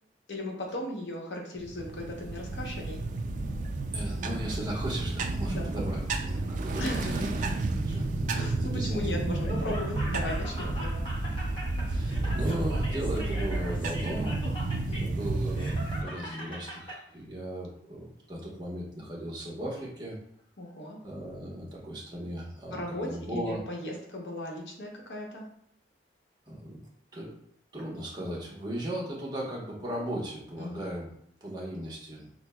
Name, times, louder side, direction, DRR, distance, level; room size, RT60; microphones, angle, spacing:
voice 1, 0.3-3.0 5.5-5.7 6.8-7.3 8.3-11.1 14.9-15.2 20.6-21.0 22.7-25.5 30.6-30.9, left 1 dB, 85° left, -1 dB, 0.9 m, -37 dB
sound 1, 1.6-16.0, right 2 dB, 45° right, 0.3 m, -31 dB
voice 2, 3.9-9.2 11.8-14.7 15.0-20.2 21.0-23.6 26.5-26.8 27.1-27.3 27.7-31.1 31.4-32.3, right 1 dB, 25° right, -3 dB, 1.0 m, -37 dB
Laughter, 9.3-17.0, equal, 30° left, 0.7 m, -41 dB
6.1 x 2.0 x 2.2 m, 0.67 s
head